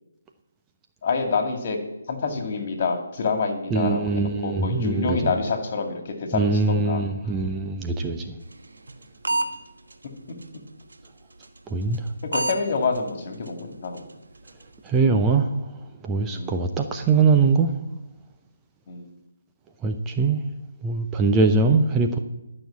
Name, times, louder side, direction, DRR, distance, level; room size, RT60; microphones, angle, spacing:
voice 1, 1.0-1.8 2.1-7.0 8.2-8.3 9.3-9.4 12.3-14.1 16.3-16.7 18.9-19.1, left 4 dB, 40° left, 4 dB, 2.4 m, -27 dB
voice 2, 3.7-5.3 6.3-8.4 11.7-12.0 14.8-15.5 16.0-17.7 19.8-20.4 20.8-22.2, right 4 dB, 15° right, 4 dB, 0.7 m, -22 dB
sound 1, 8.5-9.5 9.9-10.0 10.4-10.6 10.9-11.1 11.4-11.6 11.9-12.1 12.3-12.6 12.9-13.1 13.5-13.6 14.0-14.1 14.5-14.6, right 2 dB, 70° right, 1.3 m, -26 dB
12.0 x 6.5 x 8.6 m, 0.94 s
figure-of-eight pair, 145°, 0 cm